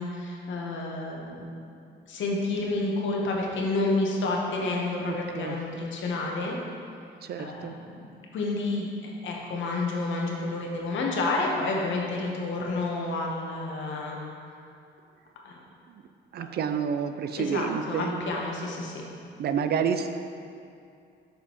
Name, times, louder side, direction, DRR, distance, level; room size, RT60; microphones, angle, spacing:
voice 1, 0.0-1.4 2.1-6.6 7.4-7.7 8.0-14.2 15.4-15.6 16.4-16.5 17.4-19.1, left 2 dB, 70° left, -1 dB, 1.0 m, -30 dB
voice 2, 5.1-5.6 7.2-7.8 16.3-18.3 19.4-20.1, right 7 dB, 55° right, 8 dB, 0.4 m, -29 dB
6.7 x 5.3 x 3.0 m, 2.5 s
cardioid pair, 90°, 20 cm